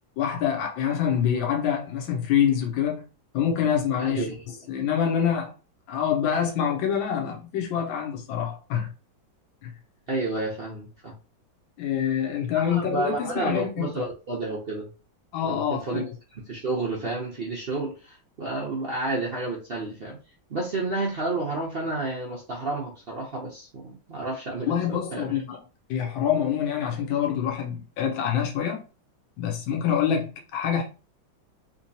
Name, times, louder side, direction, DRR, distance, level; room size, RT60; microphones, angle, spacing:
voice 1, 0.2-3.0 3.3-4.3 4.7-5.5 5.9-8.9 9.6-9.7 11.8-14.0 15.3-16.1 24.7-25.6 25.9-28.8 29.4-30.8, left 8 dB, 85° left, 1.5 m, -26 dB
voice 2, 4.0-4.3 10.1-11.1 12.5-14.9 15.4-16.0 16.3-20.2 20.5-25.3, right 2 dB, 80° right, 0.5 m, -30 dB
3.6 x 3.0 x 2.7 m
omnidirectional pair, 2.1 m